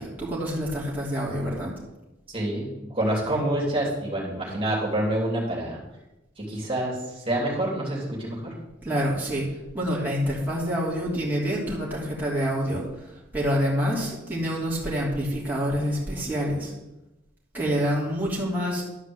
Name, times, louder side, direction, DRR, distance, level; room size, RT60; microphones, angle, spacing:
voice 1, 0.0-1.7 8.8-9.5 9.7-16.7 17.5-18.9, equal, 10° right, -7 dB, 3.1 m, -27 dB
voice 2, 2.3-5.8 6.4-8.4, right 1 dB, 30° right, -4 dB, 3.1 m, -27 dB
12.0 x 5.0 x 8.0 m, 0.96 s
head